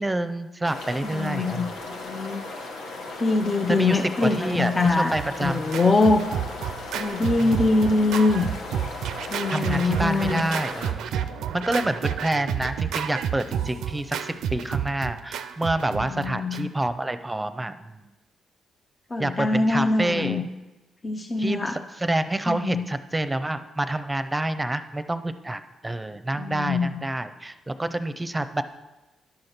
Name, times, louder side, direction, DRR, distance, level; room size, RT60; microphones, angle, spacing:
voice 1, 0.0-1.8 3.7-5.7 7.4-7.5 9.5-11.1 11.5-18.1 19.2-20.5 21.4-28.6, right 1 dB, 15° right, 11 dB, 0.6 m, -28 dB
sound 1, 0.6-10.9, left 2 dB, 75° left, 1.1 m, -37 dB
voice 2, 1.0-2.4 3.2-5.2 5.4-6.2 6.9-8.5 9.3-10.4 16.0-16.7 19.1-20.4 21.0-21.8 22.5-22.8 26.4-27.1, left 3 dB, 35° left, 4 dB, 0.6 m, -23 dB
Scratching (performance technique), 4.8-16.9, right 9 dB, 70° right, 0.4 m, -31 dB
10.5 x 6.4 x 4.4 m, 1.1 s
hypercardioid pair, 45°, 0 cm